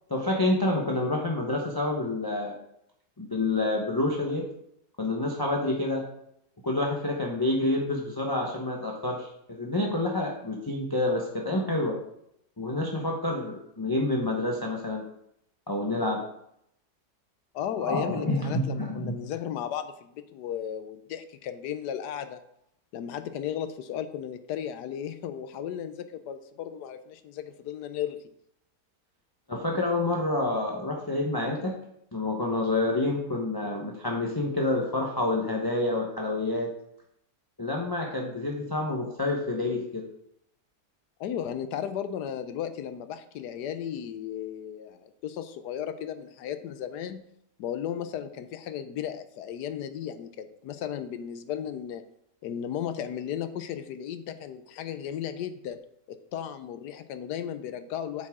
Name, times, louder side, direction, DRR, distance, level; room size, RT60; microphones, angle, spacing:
voice 1, 0.1-2.6 3.2-4.5 5.0-6.1 6.6-12.0 12.6-15.1 15.7-16.2 17.8-19.2 29.5-31.8 32.1-36.7 37.6-40.0, left 2 dB, 15° left, -1 dB, 0.9 m, -28 dB
voice 2, 17.5-22.4 22.9-28.2 41.2-47.2 47.6-52.0 52.4-55.8 56.1-58.3, left 9 dB, 85° left, 10 dB, 1.2 m, -35 dB
8.4 x 8.3 x 3.6 m, 0.76 s
omnidirectional pair, 1.7 m